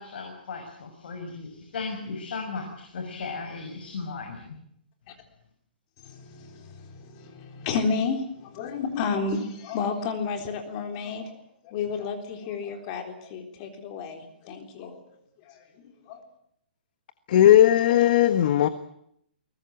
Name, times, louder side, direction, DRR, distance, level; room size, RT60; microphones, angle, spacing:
voice 1, 0.0-4.6, left 4 dB, 70° left, 4 dB, 6.0 m, -36 dB
voice 2, 6.0-15.0 15.4-16.2, left 5 dB, 35° left, 6 dB, 3.9 m, -32 dB
voice 3, 17.3-18.7, left 12 dB, 55° left, 12 dB, 1.4 m, -17 dB
23.0 x 19.5 x 8.9 m, 0.72 s
hypercardioid pair, 150°, 6 cm